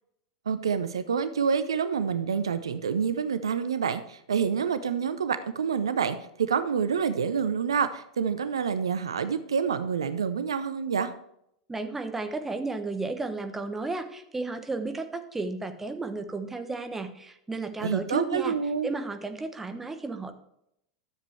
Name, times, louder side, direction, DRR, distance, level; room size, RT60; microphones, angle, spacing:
voice 1, 0.5-11.1 17.8-18.9, right 6 dB, 70° right, 12 dB, 0.6 m, -27 dB
voice 2, 11.7-18.5 18.8-20.3, right 3 dB, 10° right, 7 dB, 1.1 m, -33 dB
12.5 x 7.4 x 3.2 m, 0.74 s
figure-of-eight pair, 85°, 3 cm